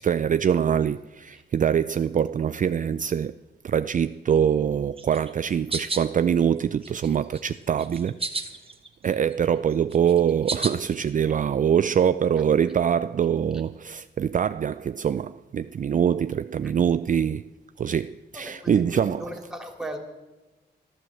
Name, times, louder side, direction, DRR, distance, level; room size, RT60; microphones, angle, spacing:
voice 1, 0.0-3.3 3.6-8.2 9.0-17.4 17.8-19.2, right 8 dB, 45° right, 0.4 m, -24 dB
sound 1, 5.0-6.1 6.6-7.4 7.8-8.9 9.2-10.9, right 3 dB, 30° right, 1.6 m, -32 dB
voice 2, 18.3-20.0, right 1 dB, 5° right, 3.1 m, -37 dB
13.0 x 13.0 x 7.6 m
cardioid pair, 85°, 18 cm